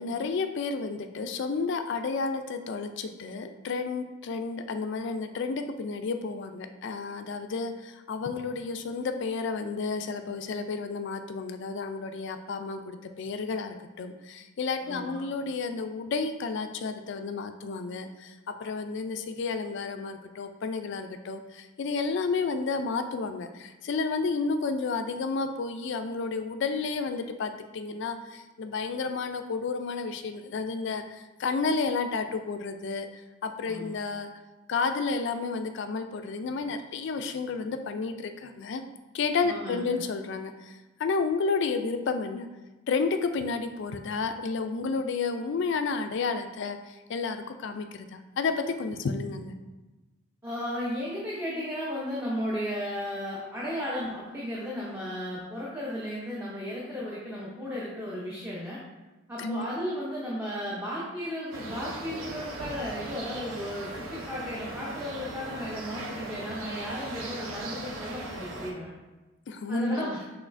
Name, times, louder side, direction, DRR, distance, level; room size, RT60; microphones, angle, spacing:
voice 1, 0.0-34.3 34.7-38.8 39.1-42.5 42.9-49.5 59.4-59.6 69.5-70.1, left 4 dB, 55° left, 8 dB, 0.3 m, -31 dB
voice 2, 14.8-15.2 33.6-34.0 39.4-40.0 50.4-58.8 59.3-68.9 69.7-70.2, equal, 10° right, -7 dB, 0.6 m, -35 dB
sound 1, 61.5-68.7, right 2 dB, 75° right, 0.7 m, -39 dB
6.1 x 3.1 x 2.5 m, 1.2 s
head